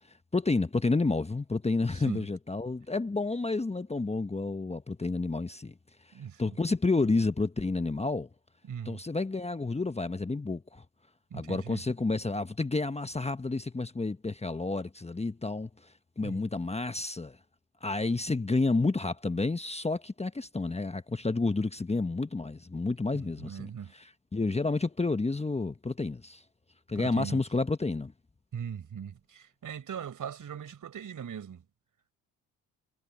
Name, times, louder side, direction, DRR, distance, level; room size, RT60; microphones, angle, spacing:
voice 1, 0.3-5.7 6.1-6.2 6.4-8.3 8.8-10.8 11.3-17.4 17.8-26.4 26.9-28.1, left 3 dB, 15° left, 1.3 m, -30 dB
voice 2, 8.7-9.0 11.3-11.8 16.2-16.4 23.4-23.9 26.9-27.4 28.5-31.6, right 8 dB, 55° right, 5.0 m, -40 dB
supercardioid pair, 60°, 39 cm